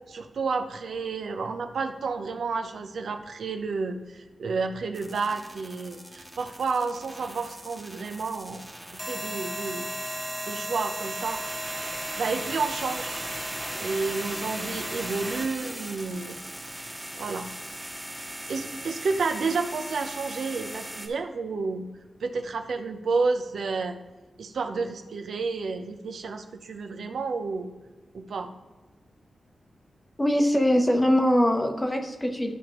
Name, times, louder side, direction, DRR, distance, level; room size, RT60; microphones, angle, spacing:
voice 1, 0.1-8.6 8.9-9.9 10.5-11.4 12.2-13.3 13.7-16.4 17.1-17.5 18.5-21.9 22.2-24.0 24.4-27.7 28.1-28.5, right 4 dB, 80° right, 5 dB, 0.8 m, -30 dB
sound 1, 4.9-21.1, right 1 dB, 5° right, 1.2 m, -36 dB
voice 2, 30.2-32.5, equal, 10° left, 4 dB, 0.9 m, -22 dB
12.5 x 5.1 x 3.1 m, 1.2 s
wide cardioid pair, 140°, 0 cm